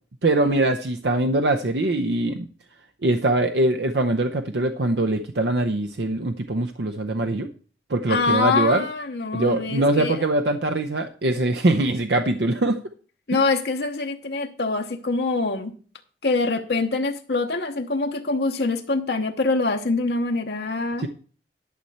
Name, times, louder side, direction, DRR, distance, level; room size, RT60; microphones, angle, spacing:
voice 1, 0.2-2.5 3.0-7.5 7.9-8.8 9.3-12.8 21.0-21.1, right 2 dB, 70° right, 6 dB, 0.7 m, -22 dB
voice 2, 8.1-10.2 13.3-15.7 16.2-21.1, left 3 dB, 65° left, 4 dB, 0.9 m, -24 dB
11.5 x 4.2 x 7.9 m, 0.42 s
head